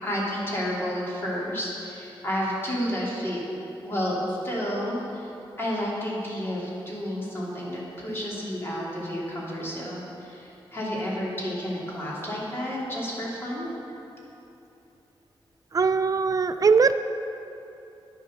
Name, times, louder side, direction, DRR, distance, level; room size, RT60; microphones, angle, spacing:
voice 1, 0.0-3.4 3.8-5.3 5.6-13.7, equal, 25° left, -6 dB, 3.1 m, -31 dB
voice 2, 15.7-16.9, right 5 dB, 40° right, 10 dB, 0.3 m, -20 dB
10.5 x 9.2 x 6.6 m, 2.9 s
wide cardioid pair, 125°, 9 cm